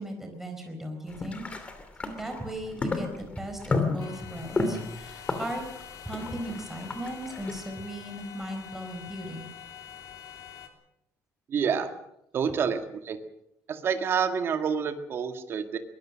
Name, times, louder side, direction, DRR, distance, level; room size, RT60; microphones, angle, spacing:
voice 1, 0.0-1.4 2.2-5.6 6.0-9.5, right 1 dB, 5° right, 3 dB, 4.5 m, -37 dB
sound 1, 1.1-7.6, left 3 dB, 20° left, 2.8 m, -32 dB
sound 2, 4.0-10.7, left 9 dB, 60° left, 3.1 m, -46 dB
voice 2, 11.5-11.9 12.3-12.8 13.0-13.2 13.7-15.8, right 7 dB, 40° right, 6 dB, 2.0 m, -27 dB
23.0 x 20.0 x 6.4 m, 0.81 s
cardioid pair, 175°, 6 cm